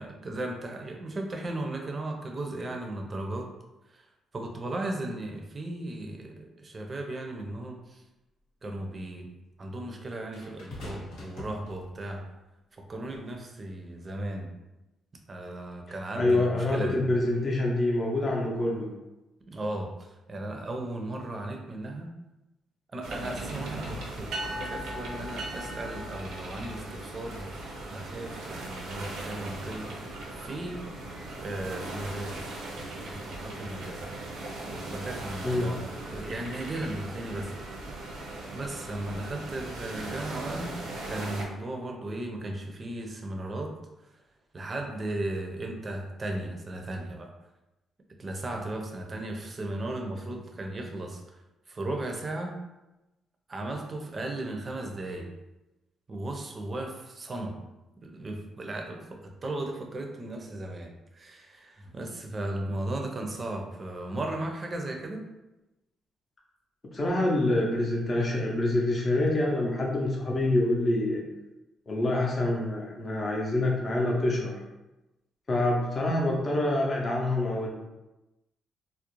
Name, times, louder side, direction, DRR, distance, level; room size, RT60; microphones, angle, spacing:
voice 1, 0.0-3.5 3.9-4.0 4.3-8.0 8.6-9.3 9.6-12.2 12.7-14.5 15.3-17.0 19.5-22.1 22.9-27.4 27.9-30.8 31.4-34.0 34.7-37.6 38.5-40.7 41.1-43.7 44.5-47.3 48.2-51.2 51.7-52.6 53.5-55.3 56.1-57.6 58.0-65.2, right 1 dB, 35° right, 2 dB, 0.5 m, -36 dB
sound 1, 10.3-12.2 13.1-13.4, left 2 dB, 85° left, 1.0 m, -44 dB
voice 2, 16.2-18.9 35.4-35.7 66.9-71.2 71.9-74.6 75.5-77.7, left 1 dB, 35° left, -2 dB, 0.5 m, -26 dB
sound 2, 23.0-41.5, right 2 dB, 85° right, 0.5 m, -38 dB
2.4 x 2.0 x 2.9 m, 1.0 s
cardioid pair, 90°, 0 cm